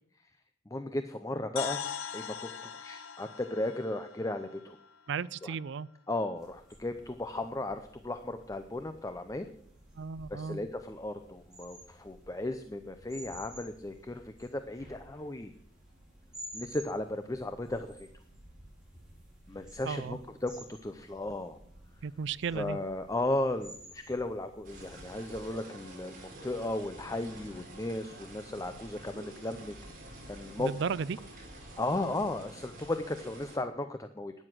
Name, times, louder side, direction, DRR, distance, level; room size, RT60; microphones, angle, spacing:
voice 1, 0.7-1.8 2.1-2.5 2.8-4.8 5.4-5.5 6.1-9.5 10.3-15.5 16.5-18.1 19.5-21.6 22.5-29.7 30.3-30.7 31.8-34.3, left 2 dB, 15° left, 9 dB, 0.6 m, -35 dB
sound 1, 1.6-5.5, left 8 dB, 80° left, 0.7 m, -41 dB
voice 2, 5.1-5.9 10.0-10.6 19.8-20.2 22.0-22.8 30.6-31.2, right 6 dB, 60° right, 20 dB, 0.4 m, -34 dB
sound 2, 6.3-25.5, right 1 dB, 5° right, 4.8 m, -53 dB
sound 3, 24.6-33.6, right 1 dB, 45° right, 4.4 m, -49 dB
12.5 x 9.9 x 6.1 m, 0.67 s
head